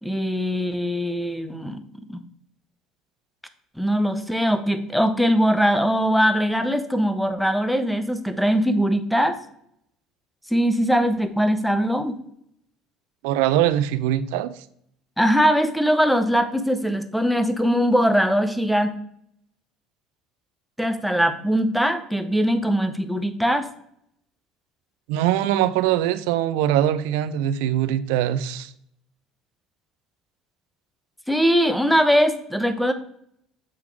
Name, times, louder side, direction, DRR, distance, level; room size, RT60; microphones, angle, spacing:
voice 1, 0.0-1.8 2.1-2.2 3.8-9.4 10.5-12.2 15.2-18.9 20.8-23.7 31.3-32.9, equal, ahead, 10 dB, 0.7 m, -21 dB
voice 2, 13.2-14.5 25.1-28.7, right 12 dB, 85° right, 14 dB, 0.4 m, -22 dB
7.8 x 3.7 x 4.7 m, 0.70 s
cardioid pair, 115°, 0 cm